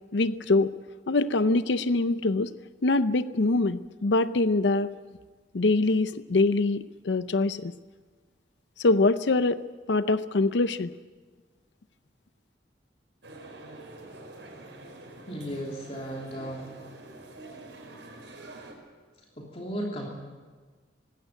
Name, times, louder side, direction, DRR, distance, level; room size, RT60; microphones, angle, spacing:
voice 1, 0.1-0.7 1.1-2.5 2.8-4.9 5.5-7.7 8.8-9.6 9.9-10.9, left 2 dB, 80° left, 13 dB, 0.6 m, -24 dB
sound 1, 13.2-18.7, right 2 dB, 85° right, 4.9 m, -46 dB
voice 2, 15.3-16.8 19.4-20.1, equal, 35° left, -1 dB, 3.1 m, -35 dB
19.5 x 16.5 x 9.2 m, 1.4 s
head